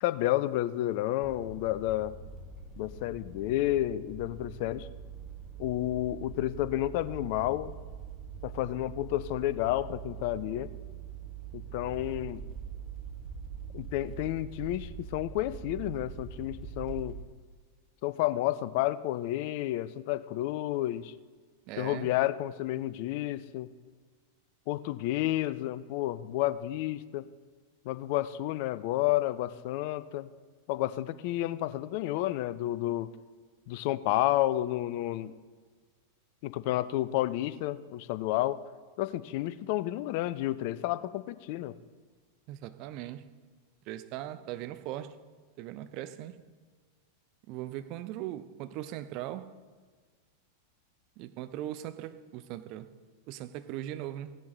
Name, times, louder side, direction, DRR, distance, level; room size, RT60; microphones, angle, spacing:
voice 1, 0.0-2.1 2.8-4.9 5.6-7.7 8.4-10.7 11.5-12.4 13.7-17.2 18.0-21.1 21.8-23.7 24.7-27.3 27.8-30.3 30.7-33.1 33.7-35.3 36.4-38.6 39.0-41.7, left 15 dB, 45° left, 0.4 m, -31 dB
sound 1, 1.2-17.1, right 7 dB, 10° right, 2.0 m, -43 dB
voice 2, 21.7-22.1 42.5-43.3 43.9-45.2 45.6-46.4 47.5-49.5 51.2-52.9 53.3-54.4, right 13 dB, 40° right, 0.6 m, -39 dB
16.5 x 10.5 x 3.1 m
figure-of-eight pair, 90°, 0 cm